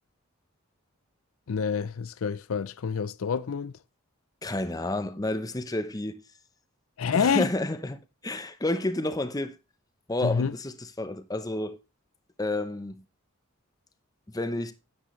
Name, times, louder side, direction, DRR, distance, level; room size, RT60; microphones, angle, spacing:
voice 1, 1.5-3.7 7.0-7.5 10.2-10.5, left 6 dB, 80° left, 0.5 m, -27 dB
voice 2, 4.4-6.2 7.1-9.6 10.1-11.8 12.4-13.0 14.3-14.7, left 2 dB, 15° left, 0.7 m, -30 dB
10.0 x 8.8 x 3.1 m
head